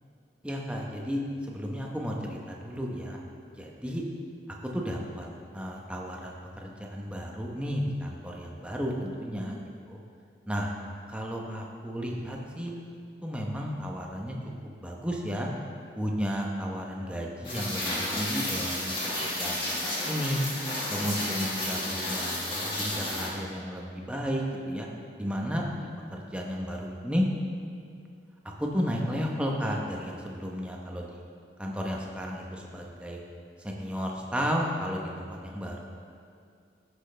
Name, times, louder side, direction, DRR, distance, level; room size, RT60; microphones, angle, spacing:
voice 1, 0.4-3.2 3.6-4.0 4.6-5.3 5.5-9.6 9.8-10.0 10.5-10.7 11.1-12.8 13.2-14.3 14.8-15.5 15.9-18.9 19.2-20.5 20.9-24.9 25.2-27.3 28.6-31.2 31.6-33.2 33.6-35.8, equal, 5° right, -1 dB, 0.9 m, -33 dB
Rain, 17.4-23.3, left 1 dB, 30° left, 2.0 m, -32 dB
15.5 x 6.3 x 3.4 m, 2.3 s
head